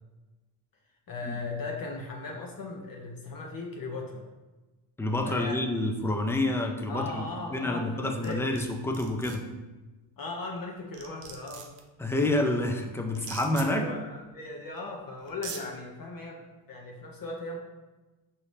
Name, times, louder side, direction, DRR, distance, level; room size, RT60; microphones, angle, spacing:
voice 1, 1.1-4.2 5.2-5.6 6.9-8.5 10.2-11.7 13.6-16.4 16.7-17.6, left 3 dB, 45° left, 0 dB, 0.7 m, -37 dB
voice 2, 5.0-7.0 7.5-9.4 12.0-13.8, left 1 dB, 5° left, 3 dB, 0.3 m, -28 dB
sound 1, 8.2-8.7 8.9-9.4 10.6-10.7 10.9-11.8 13.1-13.7 14.8-14.9 15.3-15.6, right 6 dB, 80° right, 0.8 m, -41 dB
4.8 x 2.8 x 3.1 m, 1.2 s
cardioid pair, 80°, 50 cm